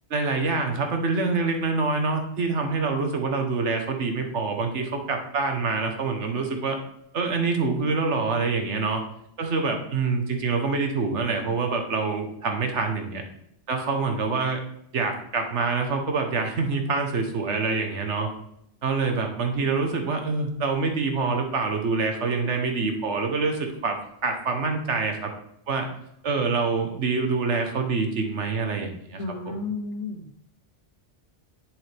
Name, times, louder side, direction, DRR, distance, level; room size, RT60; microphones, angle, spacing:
voice 1, 0.1-6.8 7.1-9.0 9.4-13.2 13.7-14.6 14.9-18.3 18.8-25.3 25.7-25.9 26.2-29.7, right 4 dB, 75° right, 4 dB, 1.4 m, -26 dB
voice 2, 29.2-30.3, left 3 dB, 80° left, 6 dB, 1.3 m, -32 dB
7.9 x 7.6 x 3.4 m, 0.74 s
omnidirectional pair, 1.2 m